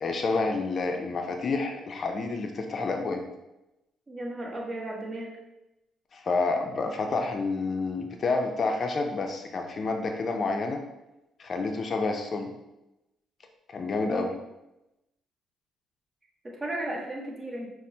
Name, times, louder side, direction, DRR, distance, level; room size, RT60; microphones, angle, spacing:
voice 1, 0.0-3.2 6.1-10.8 11.4-12.5 13.7-14.3, left 3 dB, 45° left, 4 dB, 0.4 m, -29 dB
voice 2, 4.1-5.3 14.1-14.3 16.4-17.7, right 1 dB, 30° right, -2 dB, 1.0 m, -35 dB
5.7 x 2.0 x 2.7 m, 0.94 s
cardioid pair, 90°, 0 cm